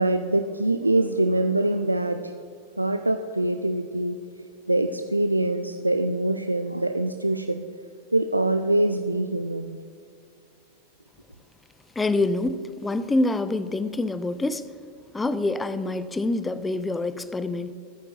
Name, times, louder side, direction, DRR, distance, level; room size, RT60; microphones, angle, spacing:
voice 1, 0.0-2.3 2.8-4.2 4.7-7.6 8.1-9.8, right 1 dB, 85° right, 0.4 m, -24 dB
voice 2, 12.0-14.7 15.1-17.7, left 2 dB, 10° left, 0.5 m, -26 dB
22.5 x 9.0 x 2.6 m
figure-of-eight pair, 90°, 0 cm